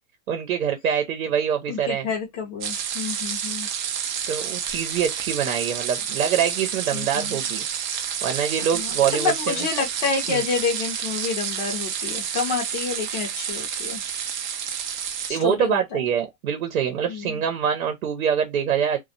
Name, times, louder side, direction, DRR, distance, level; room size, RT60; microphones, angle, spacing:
voice 1, 0.3-2.1 4.3-7.7 8.2-9.6 10.3-10.4 15.3-19.0, right 8 dB, 90° right, 0.8 m, -25 dB
voice 2, 1.7-3.7 6.9-7.4 8.7-14.0 15.3-16.0 17.1-17.4, left 5 dB, 30° left, 0.5 m, -29 dB
sound 1, 2.6-15.3, right 8 dB, 40° right, 0.4 m, -29 dB
2.3 x 2.1 x 2.6 m
supercardioid pair, 155°, 40 cm